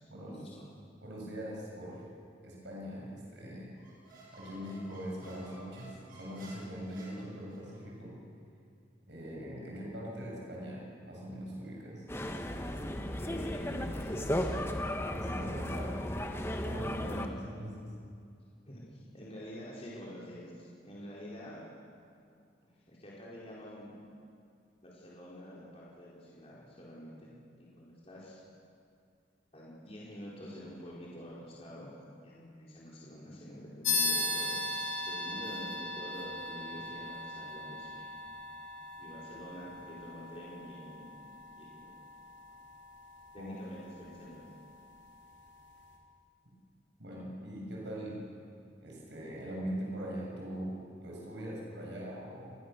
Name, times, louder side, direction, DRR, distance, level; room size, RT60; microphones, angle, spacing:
voice 1, 0.2-0.6 5.2-5.3 13.2-14.8 17.0-17.3 18.7-21.6 22.6-23.9 24.8-27.3 27.6-28.4 29.5-31.9 32.2-38.1 39.0-41.9 42.4-42.6 43.3-44.5, equal, 35° left, -6 dB, 4.5 m, -47 dB
voice 2, 1.0-2.1 2.4-3.7 4.3-8.2 9.1-12.0 15.1-16.0 16.6-17.9 43.4-43.5 47.0-48.2 48.8-52.6, equal, 70° right, -3 dB, 7.0 m, -41 dB
Squeak, 3.8-7.8, right 2 dB, 50° right, 7.6 m, -54 dB
sound 1, 12.1-17.3, left 1 dB, 15° left, 1.2 m, -35 dB
sound 2, 33.8-43.8, left 2 dB, 80° left, 4.3 m, -38 dB
28.5 x 20.0 x 6.9 m, 2.3 s
head